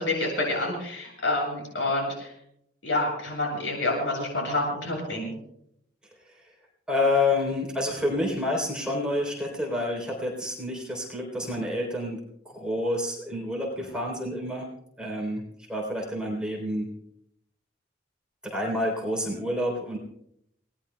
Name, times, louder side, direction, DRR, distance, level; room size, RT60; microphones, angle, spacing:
voice 1, 0.0-2.3 2.8-5.3, left 2 dB, 85° left, -2 dB, 7.9 m, -28 dB
voice 2, 6.9-12.2 12.5-14.7 15.0-15.4 15.7-16.9 18.4-20.0, left 1 dB, 5° right, -1 dB, 3.6 m, -28 dB
28.5 x 19.0 x 2.3 m, 0.75 s
head